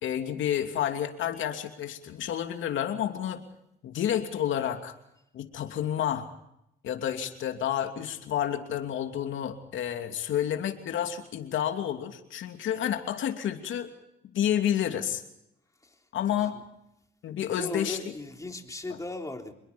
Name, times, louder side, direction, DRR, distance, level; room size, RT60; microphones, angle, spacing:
voice 1, 0.0-3.4 3.8-4.9 5.3-6.3 6.8-13.9 14.3-15.2 16.1-16.6 17.2-18.0, left 10 dB, 75° left, 5 dB, 2.9 m, -30 dB
voice 2, 17.5-19.5, left 2 dB, 15° left, 3 dB, 3.5 m, -37 dB
27.5 x 22.0 x 5.4 m, 0.80 s
cardioid pair, 90°, 20 cm